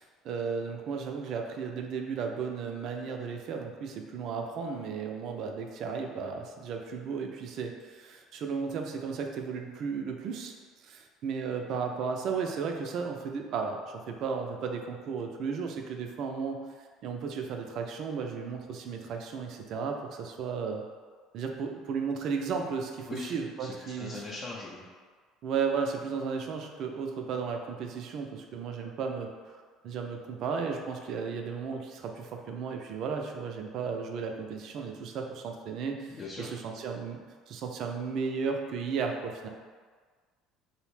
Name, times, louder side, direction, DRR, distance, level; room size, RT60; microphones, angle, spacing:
voice 1, 0.0-10.5 10.8-16.6 17.0-20.8 21.3-24.2 25.4-29.6 29.8-37.2 37.5-39.5, right 5 dB, 60° right, 3 dB, 0.3 m, -34 dB
voice 2, 23.6-24.8 36.2-36.5, left 3 dB, 40° left, -6 dB, 0.5 m, -40 dB
2.7 x 2.0 x 3.1 m, 1.5 s
hypercardioid pair, 70°, 0 cm